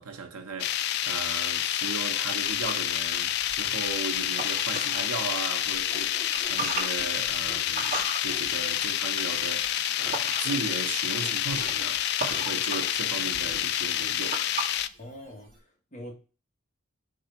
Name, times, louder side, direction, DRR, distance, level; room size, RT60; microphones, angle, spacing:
voice 1, 0.0-14.4, right 4 dB, 85° right, 1.0 m, -37 dB
sound 1, 0.6-14.9, left 11 dB, 50° left, 0.3 m, -28 dB
sound 2, 2.4-5.2 5.6-10.7 11.0-15.6, right 3 dB, 40° right, 2.0 m, -38 dB
sound 3, 5.9-6.9 7.4-7.6 8.2-8.5 9.2-9.4 10.0-10.2 10.4-10.6 11.2-11.3 12.2-12.4, left 1 dB, ahead, 2.1 m, -47 dB
voice 2, 15.0-16.1, equal, 35° left, 1.6 m, -44 dB
4.7 x 3.9 x 5.7 m
head